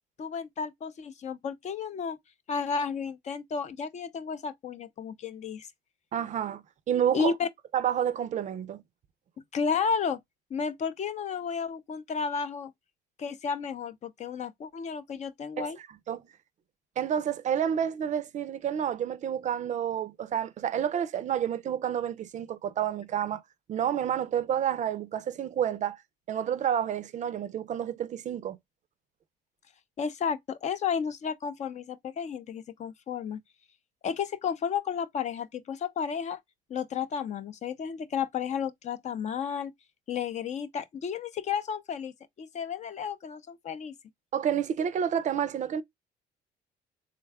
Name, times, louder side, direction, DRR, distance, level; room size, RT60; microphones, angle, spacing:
voice 1, 0.2-2.2 2.5-5.7 7.1-7.5 9.5-10.2 10.5-12.7 13.2-15.8 30.0-33.4 34.0-36.4 36.7-39.7 40.1-43.9, left 6 dB, 45° left, 0.5 m, -32 dB
voice 2, 6.1-7.3 7.7-8.8 15.6-15.7 16.1-16.2 17.0-23.4 23.7-26.0 26.3-28.6 44.3-45.8, right 9 dB, 45° right, 0.4 m, -29 dB
3.5 x 2.2 x 3.3 m
cardioid pair, 110°, 17 cm